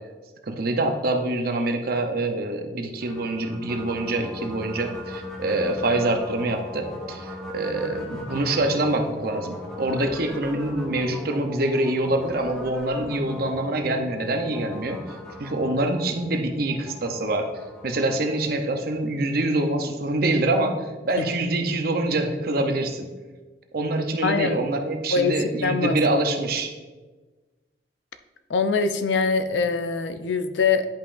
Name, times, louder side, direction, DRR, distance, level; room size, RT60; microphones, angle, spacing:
voice 1, 0.5-17.5 17.8-23.1 23.7-26.7, right 2 dB, 55° right, 5 dB, 0.7 m, -25 dB
sound 1, 3.0-19.2, left 1 dB, 5° left, 1.0 m, -39 dB
voice 2, 24.2-24.8 25.1-26.0 28.5-30.9, left 4 dB, 85° left, 9 dB, 0.5 m, -23 dB
10.5 x 5.3 x 2.5 m, 1.3 s
head